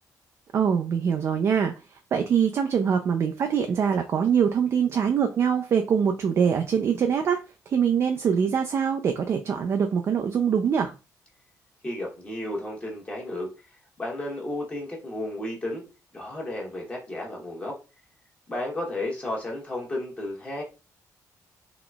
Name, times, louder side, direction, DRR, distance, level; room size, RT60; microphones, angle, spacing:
voice 1, 0.5-1.7 2.1-7.4 7.7-10.9, right 7 dB, 40° right, 6 dB, 0.3 m, -23 dB
voice 2, 11.8-13.5 14.0-15.8 16.1-17.8 18.5-20.6, left 1 dB, 20° left, -2 dB, 1.1 m, -33 dB
3.8 x 2.9 x 2.3 m, 0.29 s
cardioid pair, 165°, 7 cm